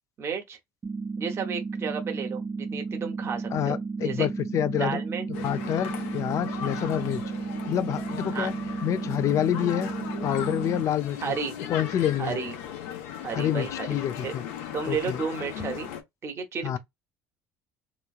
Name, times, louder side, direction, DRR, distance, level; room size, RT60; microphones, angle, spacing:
voice 1, 0.2-0.6 1.2-4.3 4.8-5.3 8.3-8.5 11.2-11.5 12.2-12.5 13.2-14.3 14.7-15.9 16.2-16.8, right 6 dB, 35° right, 1.0 m, -32 dB
sound 1, 0.8-10.8, right 4 dB, 20° right, 0.3 m, -33 dB
voice 2, 3.5-5.0 5.4-7.2 7.7-8.5 8.8-9.9 10.2-11.3 11.7-12.3 13.3-14.4 14.9-15.2 16.6-16.8, left 11 dB, 45° left, 0.5 m, -27 dB
sound 2, 5.3-16.0, left 9 dB, 85° left, 1.0 m, -38 dB
3.3 x 3.1 x 2.4 m
supercardioid pair, 110°, 7 cm